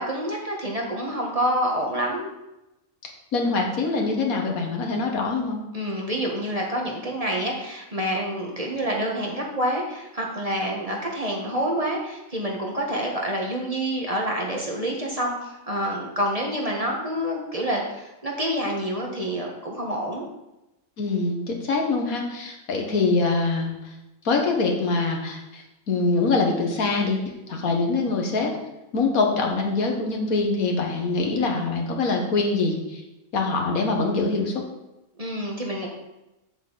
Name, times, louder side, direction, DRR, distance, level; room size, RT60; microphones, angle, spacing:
voice 1, 0.0-2.3 5.7-20.3 35.2-35.9, equal, 25° right, -1 dB, 1.4 m, -27 dB
voice 2, 3.0-5.6 21.0-23.7 24.3-28.5 28.9-33.0 33.3-34.6, left 3 dB, 80° left, 1 dB, 1.8 m, -24 dB
8.2 x 8.0 x 4.0 m, 0.96 s
omnidirectional pair, 1.5 m